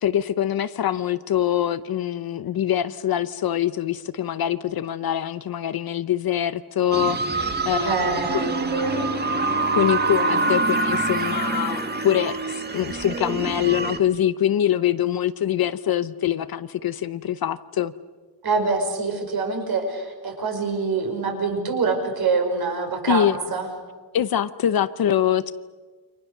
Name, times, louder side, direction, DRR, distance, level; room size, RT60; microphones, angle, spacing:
voice 1, 0.0-7.9 8.3-8.6 9.7-17.9 23.1-23.4 24.1-25.5, left 10 dB, 55° left, 13 dB, 0.8 m, -24 dB
sound 1, 6.9-14.0, right 3 dB, 20° right, 1.8 m, -25 dB
voice 2, 7.8-9.1 18.4-23.7, right 4 dB, 55° right, 4 dB, 5.5 m, -25 dB
sound 2, 8.8-13.0, left 2 dB, 20° left, 2.8 m, -36 dB
29.0 x 25.5 x 6.6 m, 1.4 s
wide cardioid pair, 175°, 43 cm